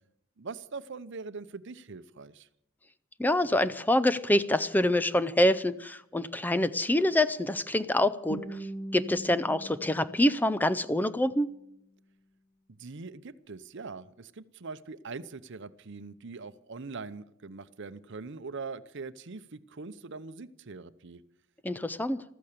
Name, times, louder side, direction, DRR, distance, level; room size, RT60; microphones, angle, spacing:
voice 1, 0.4-2.5 12.7-21.2, right 4 dB, 60° right, 14 dB, 0.8 m, -42 dB
voice 2, 3.2-8.6 8.9-11.5 21.6-22.2, left 1 dB, 10° left, 14 dB, 0.5 m, -26 dB
Guitar, 8.3-11.3, right 1 dB, 40° left, 2.4 m, -42 dB
14.5 x 14.0 x 6.7 m, 0.76 s
head